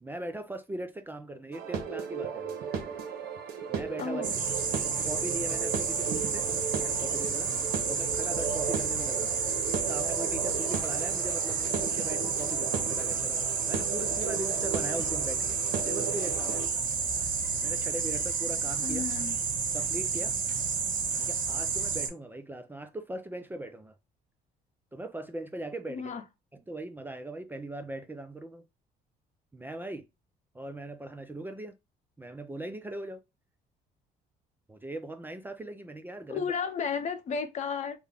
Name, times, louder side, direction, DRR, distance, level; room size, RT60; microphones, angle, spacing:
voice 1, 0.0-2.5 3.7-4.2 5.0-6.5 6.8-7.5 7.9-9.4 9.9-15.6 15.8-16.8 17.6-19.1 19.7-20.4 21.1-23.9 24.9-26.1 26.5-28.6 29.5-30.0 30.5-31.7 32.2-33.2 34.7-36.4, right 1 dB, 10° right, 0.4 m, -39 dB
sound 1, 1.5-16.7, right 6 dB, 75° right, 0.8 m, -36 dB
voice 2, 4.0-4.3 18.8-19.4 25.9-26.2 36.3-38.0, left 6 dB, 45° left, 0.7 m, -33 dB
sound 2, 4.2-22.1, right 5 dB, 50° right, 1.3 m, -30 dB
3.5 x 2.1 x 3.4 m
cardioid pair, 110°, 17 cm